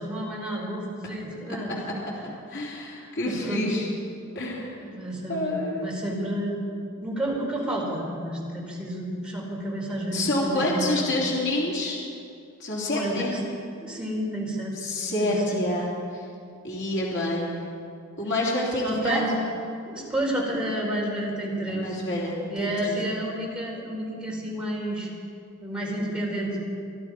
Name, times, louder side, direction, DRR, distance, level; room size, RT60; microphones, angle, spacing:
voice 1, 0.0-1.7 3.0-3.7 4.7-6.7 7.0-11.1 12.9-13.4 13.8-14.8 15.2-15.6 16.9-17.1 18.8-19.4 19.9-22.1 22.5-25.1 25.6-26.7, right 1 dB, 5° right, -3 dB, 3.8 m, -30 dB
voice 2, 2.2-3.9 4.3-4.7 5.3-5.9 10.1-12.0 12.6-13.3 14.7-16.2 16.6-17.5 18.2-19.2 21.7-23.0, left 1 dB, 55° left, -5 dB, 3.1 m, -28 dB
24.5 x 12.0 x 4.8 m, 2.4 s
head